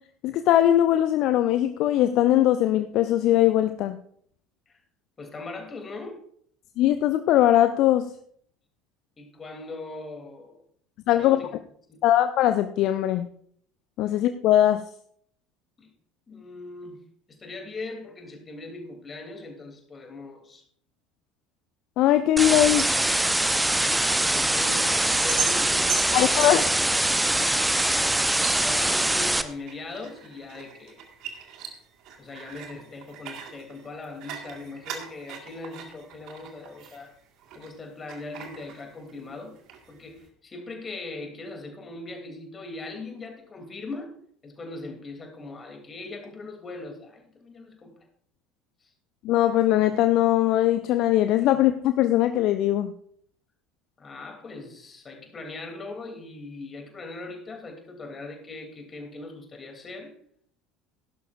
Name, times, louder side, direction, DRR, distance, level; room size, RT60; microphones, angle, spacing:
voice 1, 0.2-4.0 6.8-8.1 11.1-11.4 12.0-13.3 14.0-14.9 22.0-22.9 26.1-26.7 49.2-52.9, left 13 dB, 50° left, 10 dB, 0.5 m, -21 dB
voice 2, 5.2-6.2 9.2-10.6 11.2-11.5 11.9-12.0 15.8-15.9 16.3-20.6 24.2-26.6 28.6-31.0 32.2-37.1 37.5-39.5 39.9-44.1 44.4-47.9 48.8-48.9 51.5-51.6 54.0-60.1, left 3 dB, 25° left, 3 dB, 3.0 m, -40 dB
sound 1, 22.4-29.4, right 1 dB, 5° right, 0.8 m, -23 dB
sound 2, 22.4-37.8 38.1-39.3 39.6-40.2, right 7 dB, 50° right, 1.8 m, -40 dB
16.5 x 11.5 x 2.6 m, 0.64 s
figure-of-eight pair, 65°, 0 cm